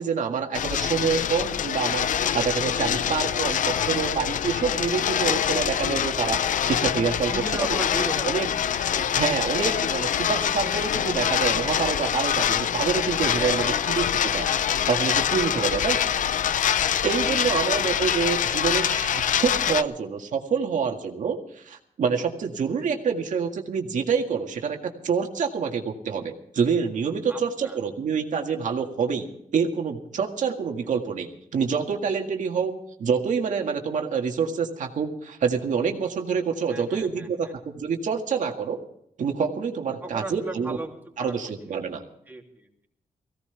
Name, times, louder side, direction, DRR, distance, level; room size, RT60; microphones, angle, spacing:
voice 1, 0.0-7.8 8.2-8.5 9.2-14.5 14.9-16.0 17.0-29.3 29.5-32.7 33.0-38.8 39.2-40.8 41.2-42.0, right 6 dB, 70° right, 3 dB, 1.9 m, -27 dB
sound 1, 0.5-19.8, left 9 dB, 75° left, 0.6 m, -25 dB
voice 2, 2.8-3.2 7.3-8.5 8.9-9.1 13.3-14.3 15.5-16.2 17.3-17.4 27.3-27.8 36.7-37.5 40.0-40.9 41.2-41.3 42.3-42.9, right 2 dB, 15° right, 0 dB, 3.1 m, -37 dB
19.5 x 16.5 x 3.4 m, 0.74 s
cardioid pair, 100°, 13 cm